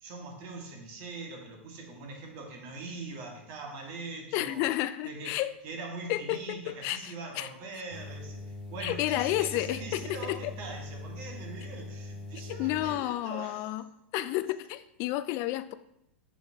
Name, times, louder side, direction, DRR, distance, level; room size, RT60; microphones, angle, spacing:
voice 1, 0.0-4.6 5.0-13.7 14.1-14.5, right 3 dB, 50° right, 1.8 m, -42 dB
voice 2, 4.3-5.5 6.1-7.5 8.8-10.5 12.6-13.9 14.1-15.7, left 15 dB, 45° left, 0.4 m, -31 dB
sound 1, 7.9-12.9, left 2 dB, 5° left, 2.4 m, -42 dB
7.0 x 6.2 x 2.9 m
hypercardioid pair, 100°, 6 cm